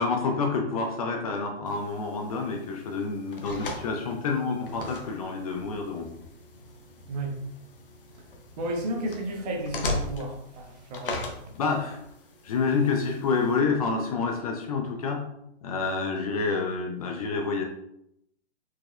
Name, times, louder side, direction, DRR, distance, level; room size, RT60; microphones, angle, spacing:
voice 1, 0.0-6.1 11.6-12.0 12.4-15.3 15.6-17.6, left 4 dB, 35° left, 3 dB, 0.5 m, -28 dB
sound 1, 1.6-13.6, left 2 dB, 55° left, 0.8 m, -39 dB
voice 2, 7.1-7.4 8.6-11.4, right 1 dB, 40° right, 1 dB, 1.0 m, -33 dB
4.4 x 4.0 x 2.2 m, 0.78 s
figure-of-eight pair, 110°, 33 cm